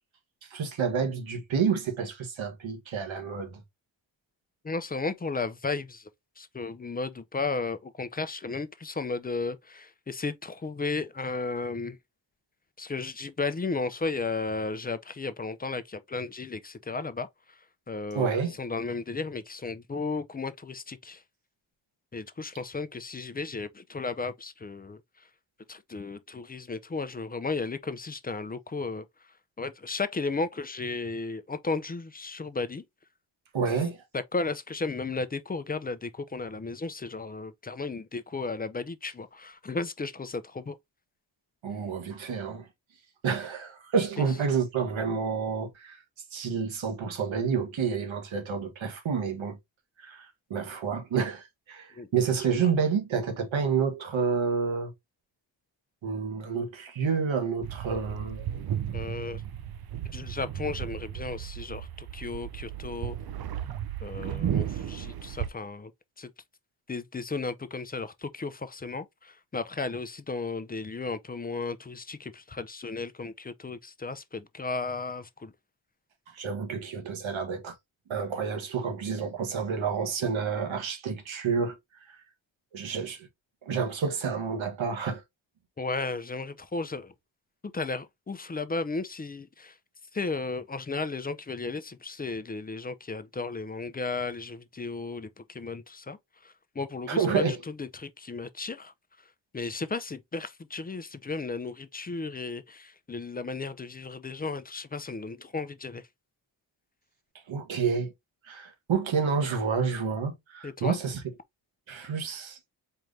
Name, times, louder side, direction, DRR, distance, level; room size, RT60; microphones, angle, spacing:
voice 1, 0.5-3.6 18.1-18.6 33.5-34.0 41.6-42.7 43.2-46.0 46.3-49.6 50.0-54.9 56.0-58.5 76.3-77.7 78.1-81.8 82.1-82.2 82.7-83.3 83.6-85.2 97.1-97.6 107.5-108.1 108.4-111.2 111.9-112.6, right 6 dB, 90° right, 1.3 m, -29 dB
voice 2, 4.6-6.1 6.4-12.0 12.8-17.6 17.9-18.3 18.6-21.2 22.1-25.0 25.7-29.1 29.6-32.8 34.1-40.8 44.2-44.3 52.0-52.1 52.6-52.7 58.9-59.4 60.1-63.2 64.0-65.9 66.2-66.3 66.9-75.5 85.8-87.1 87.7-89.8 90.1-96.2 96.4-98.9 99.5-106.0 110.6-111.0, left 3 dB, 20° left, 0.4 m, -34 dB
sound 1, 57.6-65.5, right 10 dB, 55° right, 0.5 m, -34 dB
4.5 x 2.5 x 3.2 m
cardioid pair, 80°, 45 cm